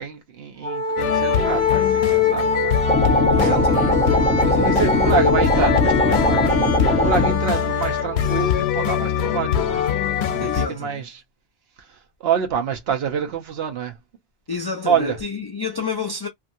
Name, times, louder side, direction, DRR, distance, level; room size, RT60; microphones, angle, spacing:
voice 1, 0.0-2.8 3.3-3.9 4.2-9.8 10.3-11.2 11.9-14.0 14.8-15.2, right 7 dB, 75° right, 1.0 m, -27 dB
Wind instrument woodwind instrument, 0.6-8.6, equal, 45° right, 1.4 m, -26 dB
sound 1, 1.0-10.7, left 10 dB, 90° left, 0.8 m, -22 dB
sound 2, 2.9-7.4, left 1 dB, 10° left, 0.8 m, -20 dB
voice 2, 3.2-4.0 4.5-5.0 10.4-11.1 14.5-16.3, left 5 dB, 35° left, 0.4 m, -30 dB
2.8 x 2.4 x 2.7 m
omnidirectional pair, 1.0 m